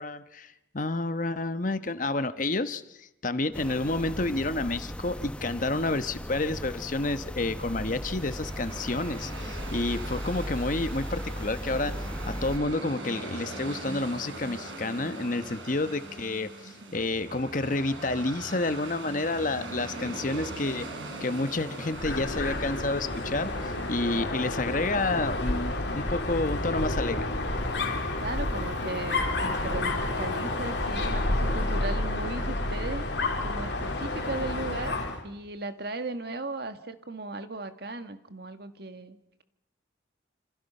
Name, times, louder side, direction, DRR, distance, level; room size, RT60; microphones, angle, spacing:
voice 1, 0.0-20.9 21.2-27.3, left 2 dB, 45° left, 11 dB, 1.1 m, -30 dB
sound 1, 3.5-12.6, equal, 5° left, 0.8 m, -37 dB
sound 2, 7.1-24.2, right 2 dB, 80° right, 5.1 m, -41 dB
voice 2, 16.6-17.0 28.2-33.1 33.4-39.4, right 2 dB, 55° right, 9 dB, 1.7 m, -37 dB
Dog, 21.9-35.2, left 2 dB, 60° left, 3.6 m, -30 dB
27.5 x 26.5 x 5.5 m, 0.85 s
head